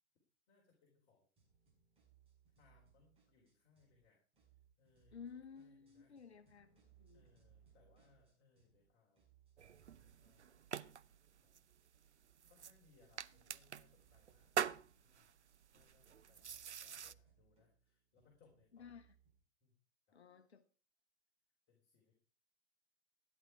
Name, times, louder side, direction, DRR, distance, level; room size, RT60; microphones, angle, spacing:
voice 1, 0.5-1.3 2.6-4.2 4.5-5.3 5.5-6.2 7.1-9.2 10.2-11.6 12.5-14.5 15.0-15.3 15.7-19.0 19.6-19.7 20.1-20.2 21.7-22.1, left 4 dB, 30° left, -2 dB, 4.2 m, -73 dB
sound 1, 1.4-4.0 4.3-8.9 9.1-19.4, right 8 dB, 15° right, 6.8 m, -72 dB
voice 2, 5.1-7.3 18.7-19.1 20.1-20.6, left 6 dB, 70° left, 9 dB, 1.1 m, -55 dB
sound 2, 9.6-17.1, right 8 dB, 80° right, 0.6 m, -46 dB
14.0 x 10.5 x 4.8 m, 0.38 s
figure-of-eight pair, 110°, 34 cm